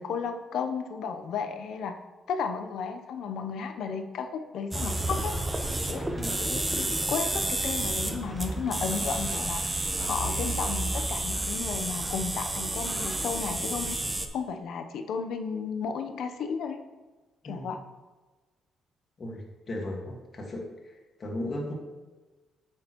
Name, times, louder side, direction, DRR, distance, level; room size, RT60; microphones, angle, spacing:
voice 1, 0.0-2.0 2.3-5.3 5.9-6.1 6.4-9.6 10.1-14.0 14.3-16.8 17.4-17.8, left 6 dB, 75° left, 6 dB, 0.7 m, -33 dB
sound 1, 4.7-14.3, right 2 dB, 15° right, 0.8 m, -30 dB
voice 2, 19.7-20.6 21.2-21.7, left 1 dB, 40° left, -1 dB, 1.7 m, -35 dB
8.6 x 6.4 x 3.0 m, 1.2 s
cardioid pair, 90°, 0 cm